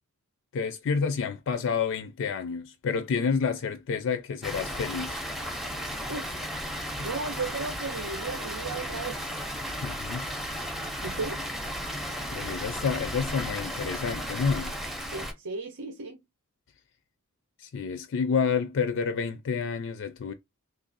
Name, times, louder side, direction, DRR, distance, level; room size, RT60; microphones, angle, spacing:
voice 1, 0.5-5.2 9.8-10.3 12.3-14.8 17.6-20.3, left 5 dB, 60° left, 0.4 m, -29 dB
Water, 4.4-15.3, equal, ahead, 0.6 m, -34 dB
voice 2, 7.0-9.4 11.0-11.4 15.1-16.2, right 3 dB, 85° right, 0.8 m, -35 dB
3.1 x 2.5 x 3.9 m
head